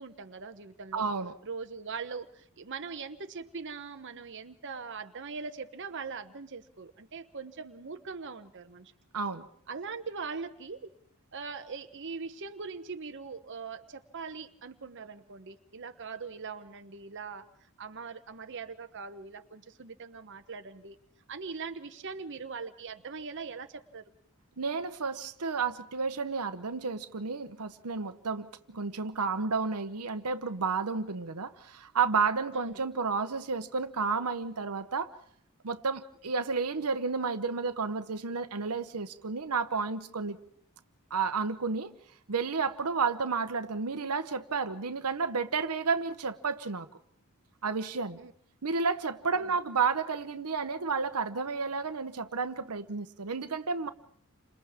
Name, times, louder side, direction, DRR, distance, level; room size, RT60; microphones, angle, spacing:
voice 1, 0.0-1.0 1.4-8.9 9.7-10.9 11.3-17.4 17.8-21.0 21.3-24.0 32.5-32.8 48.2-48.3 49.3-49.5, right 5 dB, 55° right, 7 dB, 1.0 m, -41 dB
voice 2, 0.9-1.3 9.1-9.5 24.6-35.1 35.6-40.4 41.1-41.9 42.3-46.9 47.6-48.2 48.6-53.9, right 5 dB, 85° right, 10 dB, 1.0 m, -31 dB
29.5 x 27.0 x 3.6 m, 0.63 s
head